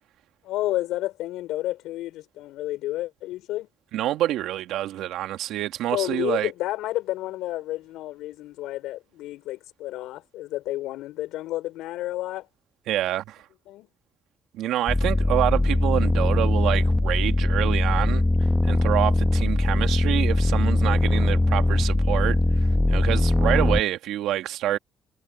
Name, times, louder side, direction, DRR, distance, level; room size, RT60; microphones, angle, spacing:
voice 1, 0.4-3.7 5.9-12.5 13.7-13.9, left 16 dB, 85° left, 5.7 m, -31 dB
voice 2, 3.9-6.5 12.9-13.4 14.5-18.2 18.6-22.4 22.9-24.8, right 13 dB, 80° right, 2.3 m, -27 dB
sound 1, 14.9-23.8, left 2 dB, 15° left, 1.8 m, -21 dB
supercardioid pair, 60°, 0 cm